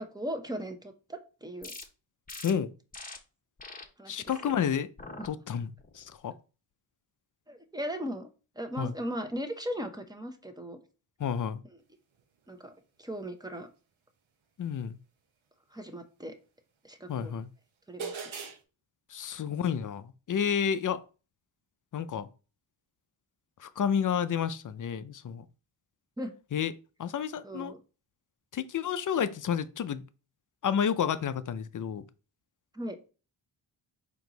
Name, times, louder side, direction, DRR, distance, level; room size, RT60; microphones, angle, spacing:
voice 1, 0.0-1.7 4.0-4.2 7.5-8.3 8.6-10.8 12.5-12.7 13.0-13.7 15.7-16.3 16.8-17.3 17.9-18.2 26.2-26.3 27.4-27.8 32.7-33.0, equal, 10° right, 0.8 m, -37 dB
sound 1, 1.6-1.8 2.3-2.5 2.9-3.2 3.6-3.8 4.3-4.5 5.0-5.3 5.8-6.1, left 3 dB, 15° left, 0.9 m, -44 dB
voice 2, 4.1-4.9 5.2-6.3 8.8-8.9 11.2-11.6 14.6-15.0 17.1-17.5 19.1-21.0 21.9-22.3 23.6-25.5 26.5-26.7 27.0-27.7 28.5-30.0 30.6-32.0, left 8 dB, 40° left, 0.5 m, -30 dB
sound 2, 17.1-17.2 18.0-18.6, right 5 dB, 70° right, 0.9 m, -37 dB
4.4 x 3.0 x 3.9 m
cardioid pair, 60°, 49 cm